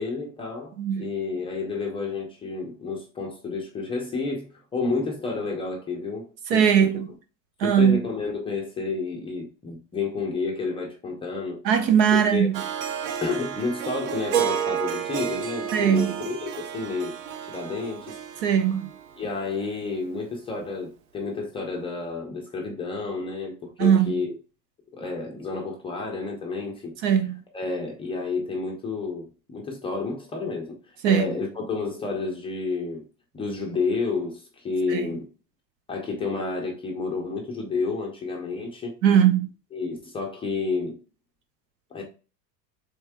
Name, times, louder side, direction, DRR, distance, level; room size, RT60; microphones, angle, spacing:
voice 1, 0.0-6.3 6.5-7.0 7.6-11.6 12.1-12.5 13.2-17.1 17.4-18.2 19.2-24.4 24.9-27.1 27.5-33.0 33.3-35.3 35.9-38.9 39.7-41.0 41.9-42.0, left 4 dB, 10° left, 0.4 m, -30 dB
voice 2, 0.8-1.1 6.5-7.1 7.6-8.0 11.6-12.6 15.7-16.1 18.4-18.9 23.8-24.1 27.0-27.4 31.0-31.2 34.9-35.1 39.0-39.5, right 8 dB, 80° right, 1.1 m, -20 dB
Harp, 12.5-19.7, right 9 dB, 50° right, 0.6 m, -31 dB
4.3 x 3.6 x 3.4 m
supercardioid pair, 150°, 49 cm